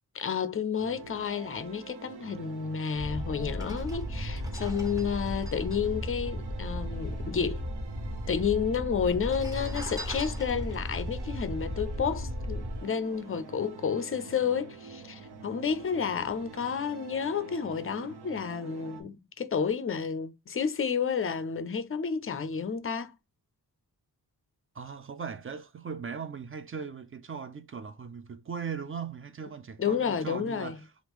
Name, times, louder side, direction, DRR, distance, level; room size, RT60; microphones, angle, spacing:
voice 1, 0.1-7.7 8.3-23.1 29.8-30.8, left 6 dB, 35° left, 0.4 m, -31 dB
sound 1, 0.8-19.0, right 5 dB, 85° right, 0.7 m, -47 dB
sound 2, 2.8-2.9 3.4-7.1 7.4-7.5 7.6-8.3 9.0-12.5 13.0-13.2, equal, 10° right, 0.9 m, -46 dB
sound 3, 2.9-12.8, left 1 dB, 70° right, 1.2 m, -35 dB
voice 2, 24.7-30.9, right 6 dB, 35° right, 0.4 m, -39 dB
3.5 x 2.5 x 3.0 m
wide cardioid pair, 105°, 39 cm